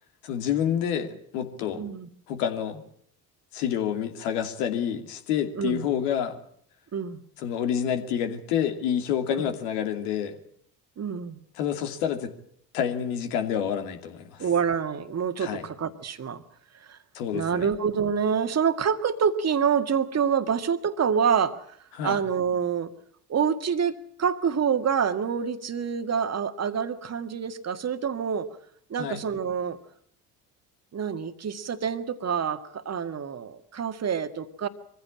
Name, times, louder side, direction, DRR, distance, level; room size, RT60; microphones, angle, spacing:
voice 1, 0.2-1.8 2.3-2.8 3.5-6.4 7.4-10.4 11.5-12.3 12.7-14.5 15.4-15.7 17.1-17.7 21.9-22.2 29.0-29.2, left 9 dB, 70° left, 6 dB, 2.8 m, -28 dB
voice 2, 1.7-2.1 5.6-5.9 6.9-7.2 9.3-9.4 11.0-11.4 14.4-16.4 16.8-17.0 17.3-21.7 22.0-22.9 23.3-23.9 24.2-28.5 28.9-29.8 30.9-34.7, right 7 dB, 35° right, 8 dB, 1.9 m, -27 dB
23.5 x 15.5 x 8.8 m, 0.66 s
hypercardioid pair, 60°, 47 cm